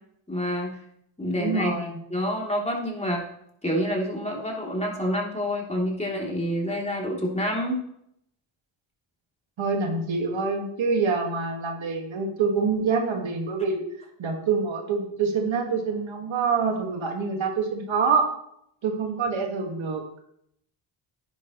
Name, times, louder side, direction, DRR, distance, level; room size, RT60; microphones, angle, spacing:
voice 1, 0.3-0.8 1.2-3.2 3.6-7.8, equal, 15° left, -2 dB, 3.3 m, -28 dB
voice 2, 1.4-2.0 9.6-13.8 14.2-18.3 18.8-20.0, right 5 dB, 65° right, 2 dB, 2.1 m, -26 dB
10.5 x 10.5 x 3.2 m, 0.73 s
cardioid pair, 70°, 49 cm